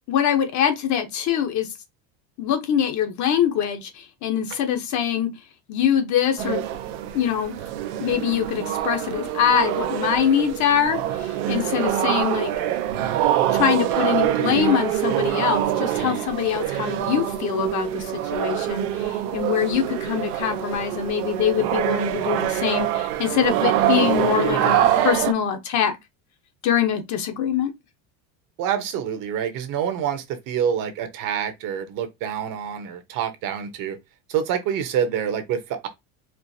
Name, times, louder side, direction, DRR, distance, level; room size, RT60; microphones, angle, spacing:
voice 1, 0.1-1.7 2.4-5.3 5.7-6.6 7.1-7.6 8.0-12.5 13.5-26.0 26.6-27.7, left 9 dB, 40° left, 0.8 m, -23 dB
sound 1, 6.4-25.3, right 12 dB, 85° right, 0.8 m, -25 dB
voice 2, 28.6-34.0 34.3-35.9, right 8 dB, 45° right, 0.9 m, -27 dB
4.5 x 2.5 x 2.7 m
cardioid pair, 155°, 43 cm